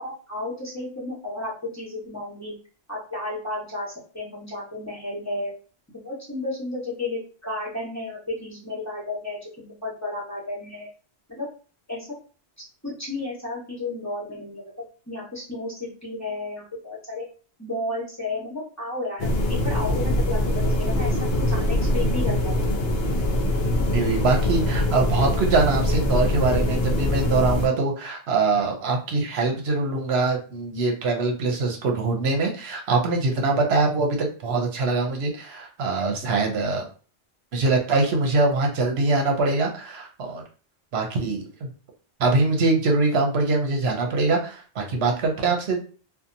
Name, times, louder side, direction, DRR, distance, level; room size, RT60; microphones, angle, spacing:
voice 1, 0.0-2.5 2.9-5.5 5.9-10.9 11.3-11.5 11.9-12.1 12.8-17.2 17.6-20.4 20.6-22.7, left 2 dB, 15° left, -6 dB, 1.0 m, -33 dB
sound 1, 19.2-27.7, left 1 dB, 75° left, 0.8 m, -23 dB
voice 2, 23.9-36.9 37.5-40.4 40.9-41.7 42.2-45.8, right 3 dB, 75° right, 1 dB, 0.9 m, -23 dB
2.7 x 2.2 x 2.6 m, 0.38 s
omnidirectional pair, 1.1 m